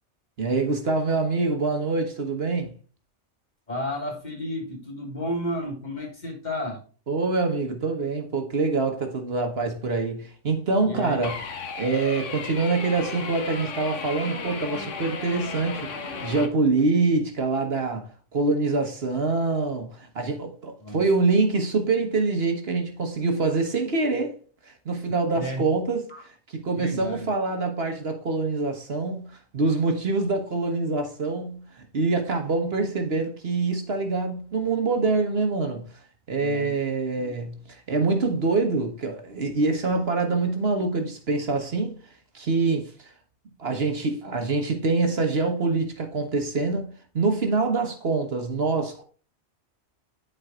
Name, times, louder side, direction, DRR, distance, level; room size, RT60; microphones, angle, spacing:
voice 1, 0.4-2.7 7.1-11.4 11.8-15.9 16.2-24.4 24.7-35.8 36.3-41.9 42.3-43.1 43.6-49.0, right 3 dB, 55° right, 1.4 m, -25 dB
voice 2, 3.7-6.8 10.8-11.2 20.8-21.0 25.3-25.6 26.1-26.2 26.7-27.3 36.4-36.7 37.2-37.3, left 1 dB, 40° left, 1.9 m, -32 dB
sound 1, 11.2-16.5, left 5 dB, 85° left, 1.3 m, -35 dB
12.0 x 4.4 x 2.4 m
omnidirectional pair, 1.2 m